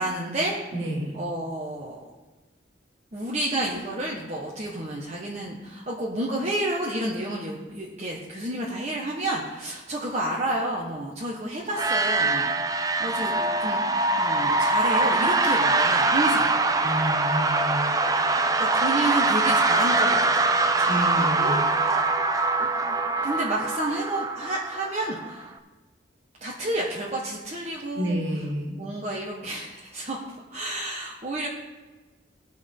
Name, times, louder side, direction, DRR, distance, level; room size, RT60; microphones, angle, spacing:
voice 1, 0.0-0.5 1.1-2.0 3.1-13.3 13.6-13.8 14.2-16.5 18.6-21.6 22.6-23.0 23.2-25.5 26.4-28.1 28.7-30.2 30.5-31.5, right 1 dB, 35° right, -4 dB, 1.3 m, -30 dB
voice 2, 0.7-1.1 16.8-18.0 20.9-21.7 27.9-28.8, equal, 85° right, -1 dB, 2.7 m, -29 dB
sound 1, 11.7-25.4, right 3 dB, 20° right, 0.5 m, -23 dB
18.5 x 6.1 x 3.8 m, 1.2 s
head